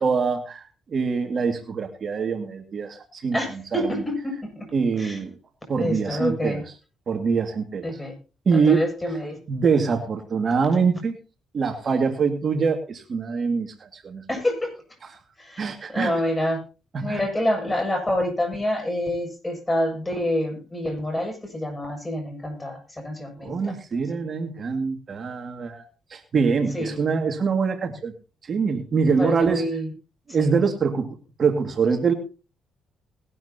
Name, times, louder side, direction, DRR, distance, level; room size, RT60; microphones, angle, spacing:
voice 1, 0.0-3.4 3.7-4.0 4.7-5.3 5.7-6.6 7.1-7.9 8.5-8.9 9.5-11.2 11.5-14.2 15.6-16.1 16.9-17.2 23.4-25.9 26.1-28.1 28.4-29.6 30.3-32.1, right 5 dB, 45° right, 4 dB, 2.2 m, -24 dB
voice 2, 3.3-4.7 5.0-5.2 5.7-6.6 7.8-8.2 8.5-9.4 14.3-14.7 15.4-16.6 17.0-23.7 26.7-27.0 29.2-29.9 30.3-30.5, left 1 dB, 15° left, 4 dB, 7.4 m, -27 dB
20.0 x 12.5 x 2.9 m, 0.33 s
cardioid pair, 90°, 0 cm